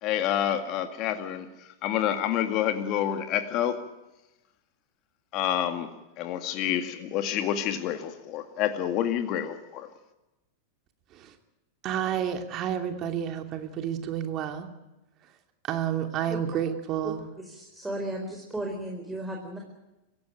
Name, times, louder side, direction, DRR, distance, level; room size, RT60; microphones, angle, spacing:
voice 1, 0.0-1.5 1.8-3.8 5.3-5.9 6.3-9.9, left 10 dB, 45° left, 8 dB, 2.0 m, -28 dB
voice 2, 11.8-14.7 15.6-17.2, right 9 dB, 40° right, 6 dB, 2.7 m, -30 dB
voice 3, 17.4-19.6, right 1 dB, 10° right, 1 dB, 4.6 m, -35 dB
26.0 x 16.0 x 9.2 m, 1.0 s
hypercardioid pair, 95°, 0 cm